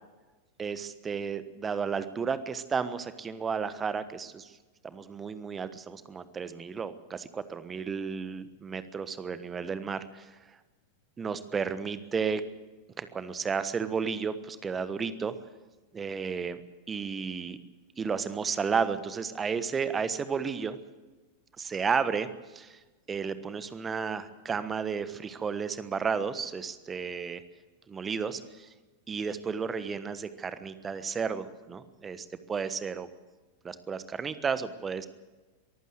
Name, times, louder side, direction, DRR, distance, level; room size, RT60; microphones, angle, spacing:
voice 1, 0.6-4.5 4.8-10.3 11.2-12.4 13.0-15.3 15.9-16.6 16.9-17.6 18.0-20.8 21.6-22.3 22.5-22.8 23.1-27.4 27.9-28.7 29.1-33.1 33.6-35.1, right 6 dB, 20° right, 13 dB, 1.3 m, -32 dB
23.0 x 15.5 x 7.9 m, 1.2 s
figure-of-eight pair, 90°, 0 cm